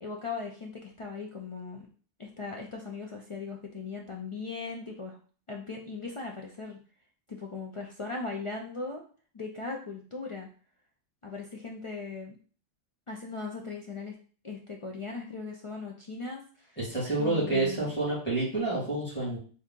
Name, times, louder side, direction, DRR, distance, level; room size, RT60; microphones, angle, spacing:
voice 1, 0.0-1.9 2.2-5.2 5.5-6.8 7.3-9.0 9.3-10.5 11.2-12.4 13.1-14.1 14.4-16.8 17.2-17.9, left 4 dB, 55° left, 0 dB, 0.3 m, -38 dB
voice 2, 16.8-19.4, right 2 dB, 10° left, -7 dB, 2.0 m, -28 dB
3.6 x 2.8 x 3.6 m, 0.41 s
omnidirectional pair, 1.2 m